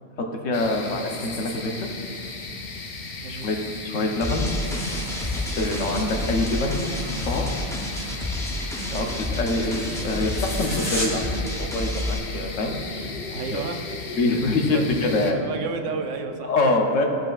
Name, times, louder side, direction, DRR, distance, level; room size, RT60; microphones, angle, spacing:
voice 1, 0.2-1.9 3.3-4.5 5.6-7.5 8.9-12.8 13.5-13.6 14.2-15.4 16.4-17.0, left 2 dB, 80° left, 2 dB, 1.2 m, -25 dB
sound 1, 0.5-15.3, left 3 dB, 55° left, 0.9 m, -36 dB
voice 2, 3.2-3.5 5.7-5.9 8.9-9.1 13.3-13.9 14.1-14.2 14.7-16.5, right 5 dB, 75° right, 5 dB, 0.9 m, -33 dB
sound 2, 4.2-12.2, left 1 dB, 5° left, 0.4 m, -30 dB
sound 3, 4.5-11.3, equal, 35° left, 2.1 m, -37 dB
14.5 x 5.2 x 2.4 m, 2.6 s
omnidirectional pair, 1.3 m